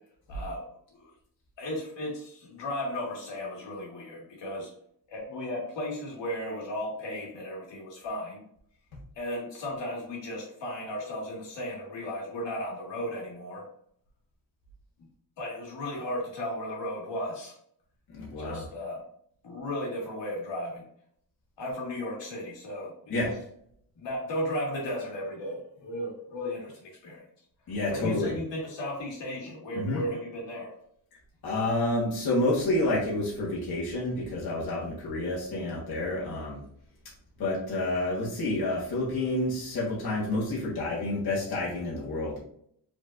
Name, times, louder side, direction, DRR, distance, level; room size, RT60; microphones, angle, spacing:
voice 1, 0.3-0.6 0.9-1.1 1.6-4.7 5.1-8.4 9.2-13.7 15.4-17.5 18.4-19.0 19.4-20.9 21.6-23.3 24.0-27.2 27.9-30.7, left 1 dB, 85° left, -2 dB, 1.9 m, -35 dB
voice 2, 18.1-18.7 23.1-23.3 27.7-28.3 29.7-30.0 31.4-36.6 37.4-42.4, left 2 dB, 60° left, -5 dB, 1.5 m, -29 dB
4.8 x 4.4 x 2.5 m, 0.66 s
wide cardioid pair, 165°, 42 cm